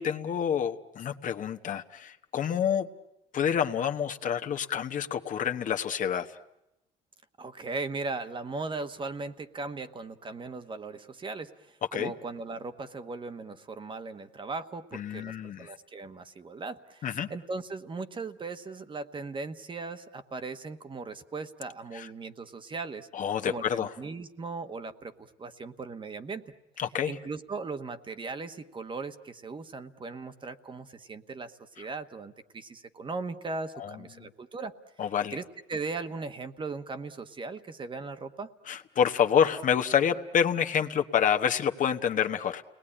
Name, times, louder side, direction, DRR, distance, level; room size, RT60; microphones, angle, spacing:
voice 1, 0.0-2.9 3.3-6.3 11.9-12.1 14.9-15.7 17.0-17.3 21.9-22.1 23.1-23.9 26.8-27.2 31.8-31.9 33.7-34.3 35.0-35.4 38.7-42.6, left 8 dB, 50° left, 6 dB, 1.2 m, -28 dB
voice 2, 7.4-23.1 23.4-26.4 27.1-34.7 35.3-35.4 35.7-38.5, right 3 dB, 30° right, 9 dB, 1.1 m, -38 dB
30.0 x 19.5 x 10.0 m, 0.93 s
cardioid pair, 110°, 17 cm